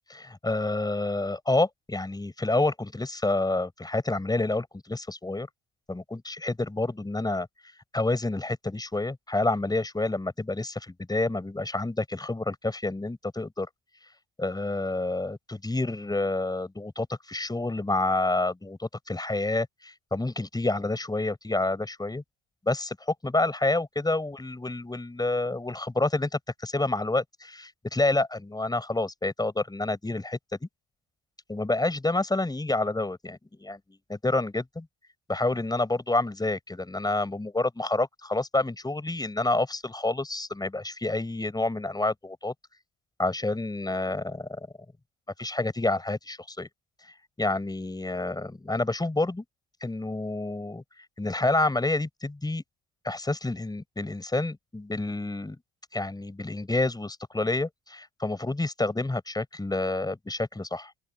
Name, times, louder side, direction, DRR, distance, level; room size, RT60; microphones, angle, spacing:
voice 1, 0.1-5.5 5.9-7.5 7.9-13.7 14.4-22.2 22.6-30.7 31.5-34.9 35.3-42.5 43.2-44.7 45.4-46.7 47.4-49.4 49.8-50.8 51.2-52.6 53.0-55.6 55.9-60.9, left 2 dB, 10° left, 6.3 m, -28 dB
open air
cardioid pair, 110°, 32 cm